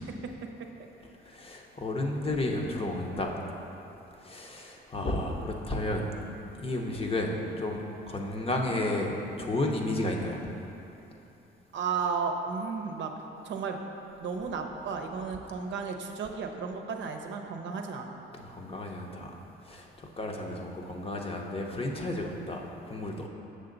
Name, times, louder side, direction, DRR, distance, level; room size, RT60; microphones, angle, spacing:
voice 1, 1.2-3.4 4.2-6.1 6.5-10.4 18.3-23.3, left 1 dB, 30° left, 1 dB, 0.8 m, -32 dB
voice 2, 11.7-13.1 13.4-13.8 14.2-18.2, right 5 dB, 70° right, 3 dB, 0.7 m, -33 dB
6.7 x 6.5 x 3.9 m, 2.9 s
cardioid pair, 90°, 20 cm